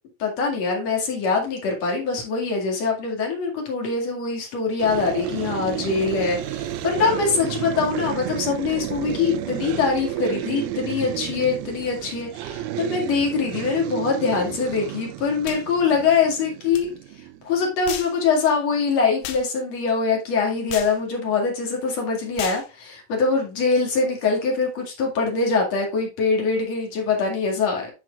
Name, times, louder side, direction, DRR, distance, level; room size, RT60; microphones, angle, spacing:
voice 1, 0.2-16.9 17.4-27.9, left 5 dB, 50° left, 0 dB, 2.9 m, -23 dB
sound 1, 4.8-17.7, right 12 dB, 80° right, 2.4 m, -32 dB
sound 2, 15.4-15.6 16.7-16.9 17.9-18.2 19.2-19.5 20.7-21.0 22.4-22.7, left 9 dB, 75° left, 2.4 m, -33 dB
12.0 x 4.7 x 2.4 m, 0.30 s
omnidirectional pair, 4.5 m